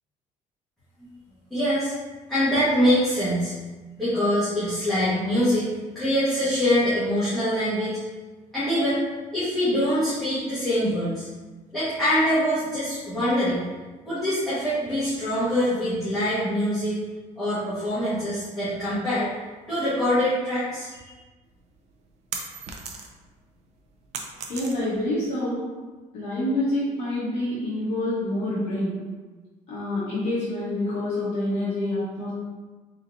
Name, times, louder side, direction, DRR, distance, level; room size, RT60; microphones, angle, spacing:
voice 1, 1.5-1.9 2.3-3.5 4.0-5.7 5.9-8.0 8.5-9.0 9.3-11.3 11.7-13.6 14.0-17.0 17.4-19.3 19.7-21.1, equal, ahead, -15 dB, 1.4 m, -24 dB
sound 1, 21.5-23.3 23.7-25.1, right 5 dB, 55° right, 0.5 m, -36 dB
voice 2, 24.5-25.6 26.1-28.9 29.7-32.3, left 1 dB, 55° left, -10 dB, 1.2 m, -27 dB
4.2 x 3.8 x 2.6 m, 1.3 s
cardioid pair, 175°, 14 cm